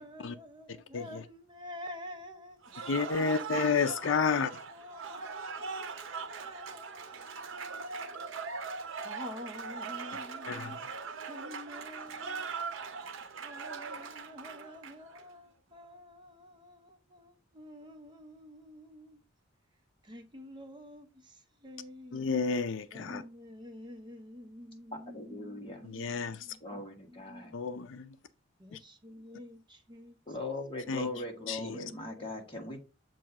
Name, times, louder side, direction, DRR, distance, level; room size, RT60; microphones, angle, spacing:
voice 1, 0.0-3.7 4.1-8.4 9.0-10.8 11.3-12.5 13.4-19.2 20.0-22.4 22.9-26.1 26.4-27.6 28.6-30.4 30.8-32.3, left 1 dB, 20° right, 0.7 m, -49 dB
Cheering / Applause, 2.6-15.2, right 5 dB, 75° right, 0.7 m, -40 dB
voice 2, 2.9-4.5 10.5-10.8 22.1-23.2 25.8-26.5 27.5-28.1 28.7-28.8 30.9-31.1 31.5-31.8, left 5 dB, 70° left, 0.5 m, -31 dB
voice 3, 25.1-25.8 26.6-27.5 30.3-32.8, left 2 dB, 25° left, 1.5 m, -40 dB
7.5 x 2.7 x 5.8 m
head